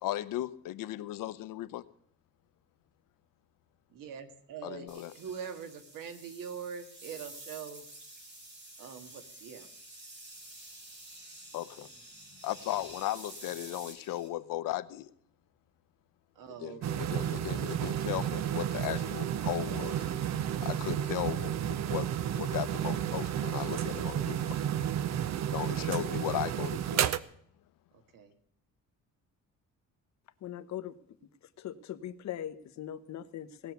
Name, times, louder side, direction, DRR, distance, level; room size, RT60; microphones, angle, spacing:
voice 1, 0.0-1.8 4.6-5.1 11.5-11.9 12.4-15.1 16.6-20.0 20.6-22.1 22.3-24.6 25.5-27.1, left 14 dB, 85° left, 15 dB, 0.8 m, -36 dB
voice 2, 3.9-7.9 8.8-9.7 16.4-17.3 25.2-25.9 27.9-28.3, right 7 dB, 85° right, 8 dB, 2.0 m, -44 dB
sound 1, 4.9-14.3, right 1 dB, 35° right, 4.7 m, -50 dB
sound 2, 16.8-27.2, right 10 dB, 55° right, 0.7 m, -32 dB
voice 3, 30.4-31.0 31.4-33.7, left 11 dB, 60° left, 11 dB, 1.0 m, -40 dB
18.0 x 7.1 x 9.3 m, 0.68 s
cardioid pair, 140°, 32 cm